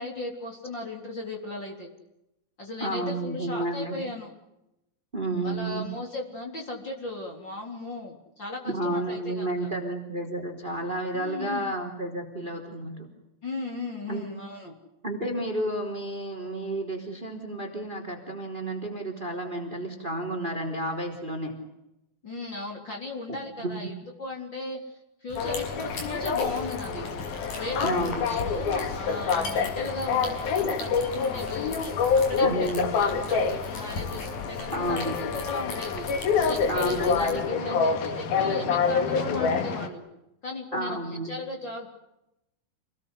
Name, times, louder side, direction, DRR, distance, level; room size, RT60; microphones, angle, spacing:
voice 1, 0.0-1.9 2.6-4.3 5.4-9.7 11.1-11.7 13.4-14.7 22.2-24.8 25.2-27.1 27.5-36.1 36.3-40.0 40.4-41.9, left 2 dB, 30° left, 1 dB, 4.0 m, -36 dB
voice 2, 2.8-4.0 5.1-5.9 8.7-13.1 14.1-14.3 15.0-21.5 23.6-23.9 27.8-28.3 32.4-32.8 34.7-35.2 36.7-37.8 40.7-41.3, right 1 dB, 15° right, 5 dB, 3.7 m, -31 dB
sound 1, 25.3-37.3, left 3 dB, 60° left, 7.3 m, -38 dB
sound 2, 25.4-39.9, left 5 dB, 80° left, 4.1 m, -27 dB
28.0 x 20.0 x 8.2 m, 0.88 s
omnidirectional pair, 4.3 m